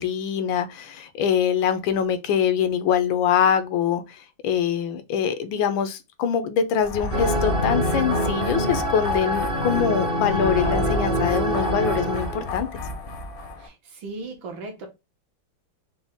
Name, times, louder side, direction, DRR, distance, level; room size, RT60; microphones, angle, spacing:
voice 1, 0.0-12.7, left 8 dB, 80° left, 1.4 m, -24 dB
sound 1, 6.8-13.7, left 3 dB, 55° left, 0.7 m, -31 dB
sound 2, 7.1-12.5, right 1 dB, 50° right, 0.7 m, -25 dB
voice 2, 13.6-14.9, right 3 dB, 75° right, 1.8 m, -37 dB
5.3 x 2.2 x 3.4 m
omnidirectional pair, 2.2 m